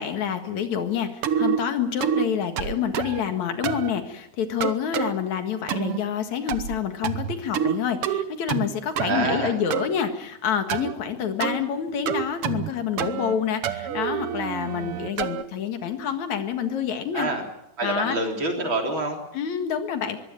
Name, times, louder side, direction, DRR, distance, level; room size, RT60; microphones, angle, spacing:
voice 1, 0.0-17.3 17.8-18.2 19.3-20.2, left 8 dB, 75° left, 7 dB, 3.0 m, -27 dB
sound 1, 1.2-1.6 2.0-2.3 2.6-3.2 3.6-3.9 4.6-5.1 5.7-6.0 6.5-6.8 7.0-7.8 8.0-8.7 9.0-9.9 10.7-10.9 11.4-11.6 12.1-12.7 13.0-13.3 13.6-15.4, right 9 dB, 60° right, 1.7 m, -27 dB
voice 2, 8.9-9.6 17.1-17.4 17.8-19.2, right 2 dB, 40° right, 2 dB, 4.1 m, -27 dB
23.0 x 16.0 x 9.1 m, 0.84 s
omnidirectional pair, 3.3 m